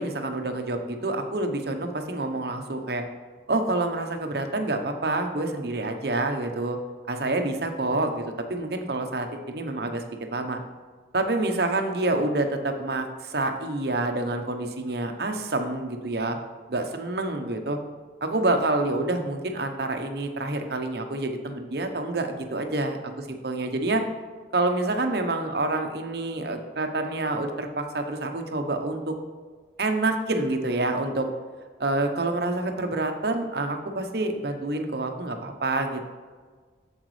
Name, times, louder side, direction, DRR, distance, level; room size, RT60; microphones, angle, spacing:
voice 1, 0.0-3.0 3.5-6.8 7.1-8.2 8.5-10.0 10.3-10.6 11.1-16.4 16.7-17.8 18.2-23.0 23.3-24.0 24.5-29.2 29.8-31.3 31.8-36.1, right 2 dB, 60° right, 5 dB, 0.9 m, -27 dB
8.0 x 7.2 x 3.2 m, 1.5 s
head